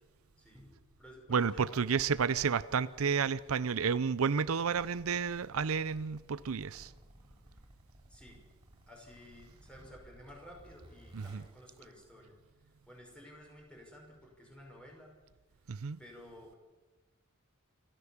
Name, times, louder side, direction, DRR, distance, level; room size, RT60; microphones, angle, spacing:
voice 1, 0.4-2.0 8.1-8.5 8.9-12.4 12.6-15.1 16.0-16.6, equal, 5° left, 5.7 m, -53 dB
voice 2, 1.3-6.9 11.1-11.4 15.7-16.0, right 6 dB, 85° right, 0.6 m, -31 dB
Zipper (clothing), 4.5-12.5, equal, 20° right, 4.6 m, -59 dB
27.0 x 13.5 x 7.3 m
head